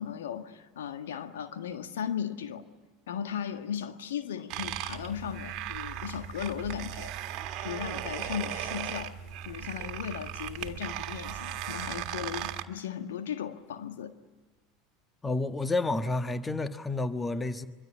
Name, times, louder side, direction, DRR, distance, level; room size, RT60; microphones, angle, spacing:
voice 1, 0.0-2.6 3.1-7.1 7.6-9.2 9.4-14.1, left 8 dB, 70° left, 8 dB, 1.6 m, -36 dB
sound 1, 4.5-12.6, right 11 dB, 50° right, 1.7 m, -37 dB
voice 2, 15.2-17.7, left 2 dB, 15° left, 11 dB, 1.4 m, -30 dB
24.5 x 23.5 x 10.0 m, 1.3 s
figure-of-eight pair, 75°, 0 cm